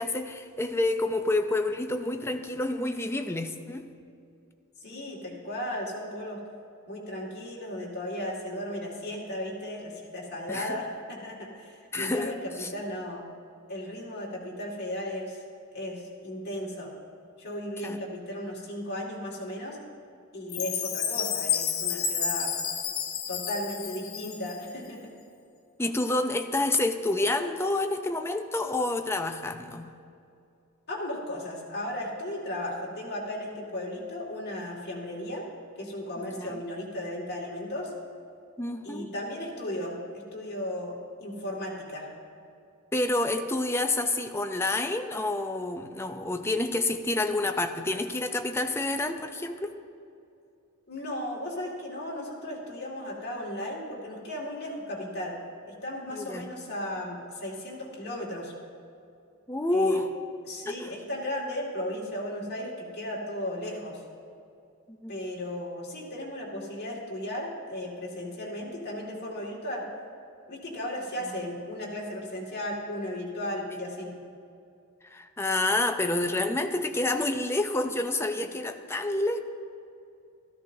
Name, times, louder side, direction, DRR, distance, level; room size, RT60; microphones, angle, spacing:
voice 1, 0.0-3.9 10.5-10.8 11.9-12.3 12.6-12.7 17.8-18.0 25.8-29.9 36.2-36.5 38.6-39.1 42.9-49.7 56.1-56.5 59.5-60.1 60.7-60.9 65.0-65.2 71.2-71.4 73.7-73.8 75.1-79.4, left 2 dB, 10° left, 6 dB, 0.5 m, -28 dB
voice 2, 4.8-6.4 6.9-13.2 13.7-15.4 15.7-16.9 17.4-19.8 20.3-22.5 23.3-25.1 30.9-35.4 35.8-37.9 38.8-42.1 50.9-55.4 55.7-58.5 59.7-60.0 60.4-64.0 65.1-69.9 70.5-74.1, left 1 dB, 50° left, -4 dB, 2.2 m, -35 dB
Chime, 20.5-24.7, left 8 dB, 70° left, 0.9 m, -30 dB
13.5 x 13.5 x 2.7 m, 2.5 s
head